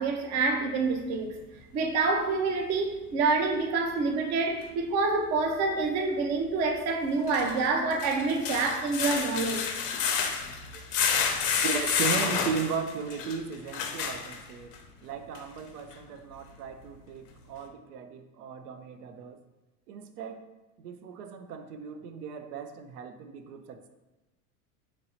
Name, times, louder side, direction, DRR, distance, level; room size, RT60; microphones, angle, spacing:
voice 1, 0.0-1.4 1.7-9.7, right 3 dB, 35° right, 4 dB, 0.5 m, -27 dB
sound 1, 4.6-4.7 7.1-14.8 15.3-15.4 15.9-16.0, left 6 dB, 90° left, 0.6 m, -30 dB
voice 2, 11.6-19.4 19.9-20.5 20.8-23.9, right 6 dB, 90° right, 8 dB, 0.6 m, -36 dB
3.0 x 2.6 x 4.3 m, 1.1 s
supercardioid pair, 115°, 45 cm